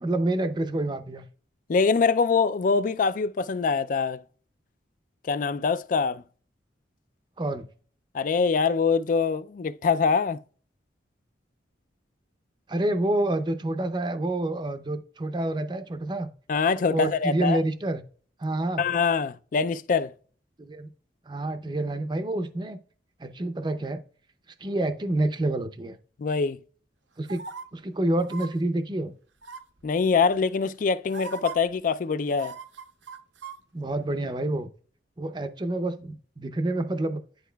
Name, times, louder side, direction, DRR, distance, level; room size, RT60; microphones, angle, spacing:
voice 1, 0.0-1.3 7.4-7.6 12.7-16.3 16.9-18.0 18.4-18.8 20.6-20.9 21.3-22.8 23.2-24.0 24.6-26.0 27.2-27.4 27.7-29.1 33.7-34.7 35.2-37.2, right 1 dB, 25° right, 0.5 m, -28 dB
voice 2, 1.7-4.2 5.2-6.2 8.1-10.4 16.5-17.6 18.8-20.1 26.2-26.6 29.8-32.6, left 5 dB, 45° left, 0.3 m, -24 dB
sound 1, 27.3-27.6 28.2-28.5 29.4-29.8 30.7-30.8 31.1-31.5 32.3-33.6 33.9-34.0, right 5 dB, 75° right, 0.7 m, -39 dB
10.5 x 4.5 x 2.2 m
head